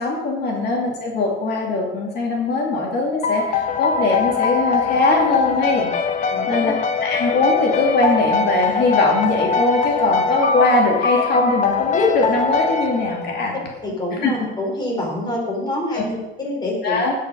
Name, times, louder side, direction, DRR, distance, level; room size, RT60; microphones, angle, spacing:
voice 1, 0.0-5.9 6.5-6.7 7.0-13.5 14.2-14.3 15.9-16.0 16.8-17.1, left 3 dB, 60° left, -1 dB, 2.4 m, -20 dB
sound 1, 3.2-13.6, left 5 dB, 45° left, 0.8 m, -22 dB
voice 2, 6.3-6.7 13.8-17.0, left 1 dB, 20° left, -1 dB, 3.4 m, -26 dB
17.0 x 5.7 x 5.2 m, 1.1 s
cardioid pair, 160°, 19 cm